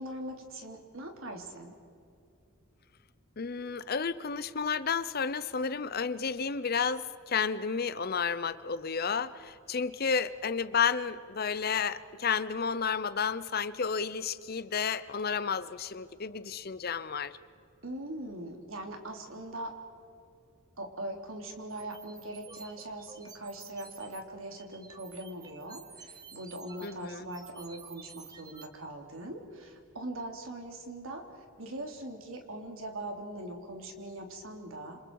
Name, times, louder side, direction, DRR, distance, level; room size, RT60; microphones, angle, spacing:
voice 1, 0.0-1.7 17.8-19.7 20.8-35.0, right 1 dB, 80° right, 3 dB, 3.2 m, -41 dB
voice 2, 3.4-17.4 26.8-27.3, left 6 dB, 45° left, 14 dB, 0.7 m, -31 dB
sound 1, 21.7-24.2 24.6-28.7, right 5 dB, 20° right, 1.1 m, -51 dB
28.5 x 26.5 x 4.8 m, 2.5 s
head